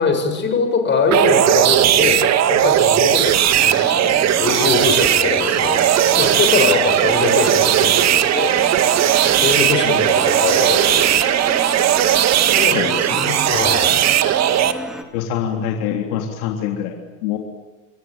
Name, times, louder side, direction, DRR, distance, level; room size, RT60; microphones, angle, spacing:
voice 1, 0.0-8.5 9.2-11.4 12.6-14.1, left 4 dB, 25° left, 5 dB, 7.1 m, -22 dB
sound 1, 1.1-14.7, right 11 dB, 40° right, 2.0 m, -17 dB
sound 2, 3.5-15.0, equal, ahead, 3.4 m, -33 dB
voice 2, 12.6-13.4 15.1-17.4, left 9 dB, 85° left, 2 dB, 3.6 m, -25 dB
28.0 x 23.0 x 9.0 m, 1.2 s
supercardioid pair, 140°, 40 cm